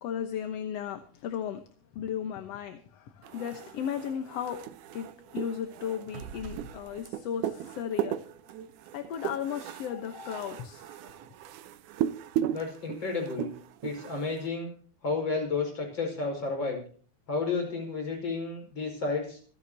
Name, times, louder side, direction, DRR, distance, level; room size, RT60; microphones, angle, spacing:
voice 1, 0.0-1.6 1.9-4.6 4.9-8.2 8.9-11.0, left 9 dB, 65° left, 7 dB, 1.9 m, -35 dB
sound 1, 3.2-14.5, right 11 dB, 90° right, 2.4 m, -37 dB
voice 2, 12.5-13.5 13.8-14.7 15.0-16.8 17.3-19.4, left 4 dB, 35° left, 2 dB, 6.0 m, -31 dB
26.5 x 9.9 x 2.8 m, 0.43 s
omnidirectional pair, 3.5 m